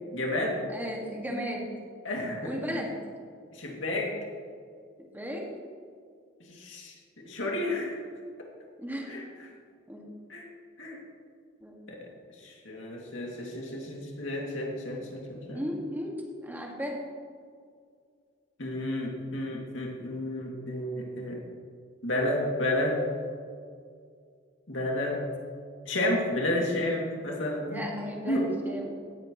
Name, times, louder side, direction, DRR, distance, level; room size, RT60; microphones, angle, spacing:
voice 1, 0.1-0.6 2.0-2.8 3.5-4.1 6.5-6.9 7.2-8.0 9.1-9.3 10.3-10.5 10.8-11.0 11.9-12.1 12.4-15.6 18.6-21.4 22.0-23.0 24.7-25.2 25.8-27.9 28.3-28.5, left 1 dB, 70° left, -2 dB, 2.5 m, -31 dB
voice 2, 0.7-1.7 2.4-2.9 5.0-5.4 8.8-9.1 9.9-10.0 11.6-11.7 15.5-17.0 27.7-28.9, equal, 10° right, -1 dB, 1.9 m, -35 dB
17.5 x 9.4 x 3.1 m, 2.1 s
head